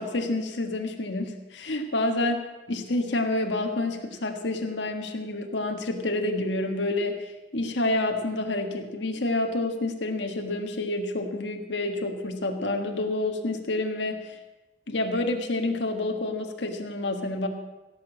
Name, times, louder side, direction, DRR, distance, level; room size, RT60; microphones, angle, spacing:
voice 1, 0.0-2.4 2.7-7.3 7.5-14.4 14.9-17.5, left 2 dB, 85° left, 4 dB, 1.6 m, -28 dB
16.5 x 7.1 x 7.6 m, 1.1 s
head